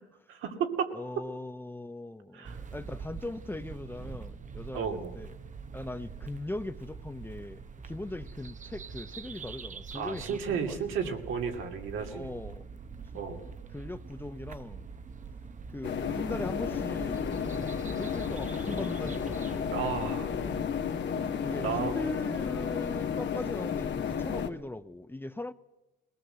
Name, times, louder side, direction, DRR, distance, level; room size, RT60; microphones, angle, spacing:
voice 1, 0.3-0.9 2.3-2.6 4.7-5.1 9.9-12.3 13.1-13.4 19.7-20.3 21.6-21.9, right 6 dB, 85° right, 2.7 m, -33 dB
voice 2, 0.9-5.3 5.7-11.2 12.1-12.7 13.1-14.9 15.7-17.3 18.0-19.6 21.4-25.5, left 2 dB, 10° left, 0.7 m, -40 dB
sound 1, 2.4-20.6, right 5 dB, 40° right, 1.0 m, -44 dB
sound 2, 15.8-24.5, left 7 dB, 65° left, 1.6 m, -32 dB
21.5 x 18.5 x 7.9 m
cardioid pair, 90°, 20 cm